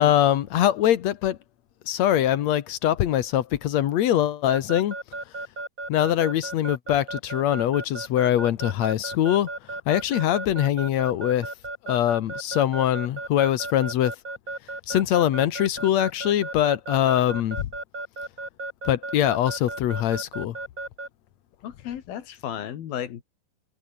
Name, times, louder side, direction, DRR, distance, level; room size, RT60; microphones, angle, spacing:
voice 1, 0.0-1.4 1.9-5.0 5.9-9.5 9.9-11.5 11.8-14.2 14.9-17.7 18.9-20.6, left 11 dB, 65° left, 1.9 m, -23 dB
Keyboard (musical) / Alarm, 4.5-21.1, right 2 dB, 20° right, 4.8 m, -34 dB
voice 2, 21.6-23.2, left 10 dB, 80° left, 3.8 m, -34 dB
omnidirectional pair, 4.2 m